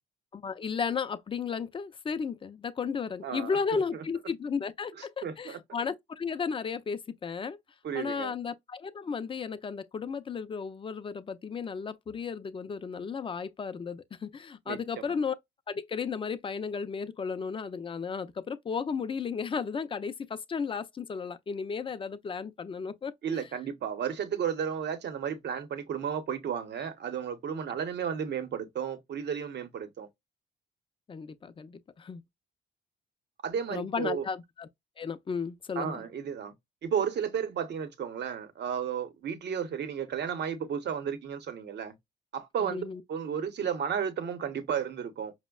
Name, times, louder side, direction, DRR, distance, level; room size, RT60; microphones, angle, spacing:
voice 1, 0.3-7.6 7.9-15.4 15.7-23.4 31.1-32.2 33.7-34.7 35.0-36.0 42.6-43.0, left 5 dB, 25° left, 0.4 m, -34 dB
voice 2, 3.2-3.8 5.2-5.6 7.8-8.3 14.7-15.1 23.2-30.1 33.4-34.3 35.8-36.5 36.8-41.9 42.3-45.3, right 7 dB, 60° right, 0.8 m, -33 dB
5.0 x 2.1 x 2.3 m
cardioid pair, 90°, 20 cm